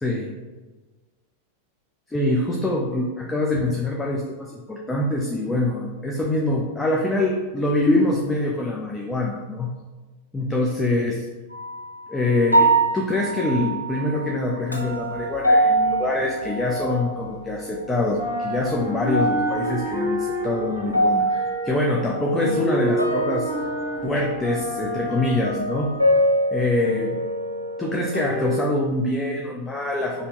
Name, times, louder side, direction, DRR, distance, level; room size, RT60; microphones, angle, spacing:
voice 1, 0.0-0.3 2.1-9.7 10.3-11.3 12.1-23.5 24.0-25.9 26.5-27.2 27.8-30.3, left 2 dB, 10° left, -1 dB, 0.4 m, -24 dB
sound 1, 11.5-11.9 12.5-17.4 17.7-18.5 18.9-28.6, right 1 dB, 90° right, 0.4 m, -25 dB
sound 2, 15.1-17.8 18.0-26.2, equal, 20° right, 1.3 m, -31 dB
3.4 x 2.6 x 3.9 m, 1.3 s
figure-of-eight pair, 90°, 0 cm